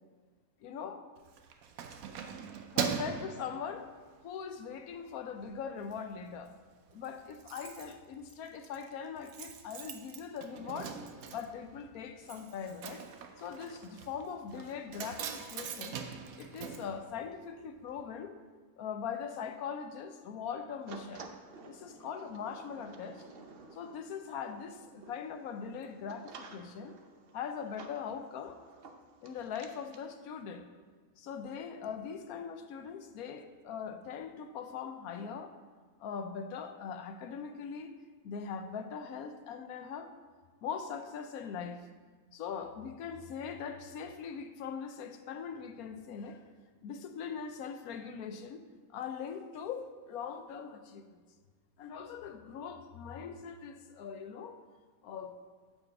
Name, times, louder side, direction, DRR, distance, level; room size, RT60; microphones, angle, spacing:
voice 1, 0.6-1.0 2.7-3.9 4.2-6.5 6.9-10.9 11.3-13.0 13.4-16.0 16.4-18.4 18.8-21.3 21.6-23.2 23.7-27.0 27.3-28.6 29.2-30.6 31.2-35.5 36.0-37.9 38.2-40.1 40.6-41.8 42.3-46.4 46.8-48.6 48.9-51.0 51.8-54.6 55.0-55.3, left 6 dB, 85° left, 8 dB, 1.2 m, -41 dB
Keys jangling, 1.2-4.3 4.7-4.9 5.3-6.0 6.3-6.4 6.6-6.7 6.9-17.7 18.0-18.1, right 7 dB, 80° right, 1.1 m, -41 dB
sound 1, 20.9-30.0, right 4 dB, 50° right, 0.8 m, -53 dB
8.9 x 4.6 x 6.6 m, 1.5 s
omnidirectional pair, 1.5 m